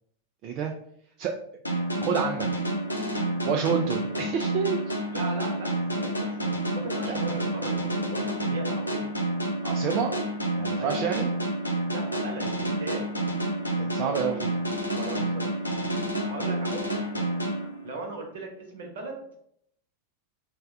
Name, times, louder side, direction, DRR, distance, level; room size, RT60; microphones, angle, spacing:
sound 1, 1.6-18.2, right 1 dB, 85° left, 0.5 m, -29 dB
voice 1, 2.0-2.5 3.4-4.8 9.6-10.1 10.6-11.3 13.8-14.5, right 7 dB, 40° right, 2 dB, 0.3 m, -28 dB
voice 2, 5.1-9.1 10.8-11.1 11.9-13.1 14.0-14.1 14.5-14.7 14.9-15.4 16.2-17.3 17.8-19.2, right 2 dB, 60° right, 1 dB, 0.9 m, -38 dB
3.2 x 2.2 x 3.5 m, 0.69 s
figure-of-eight pair, 90°, 0 cm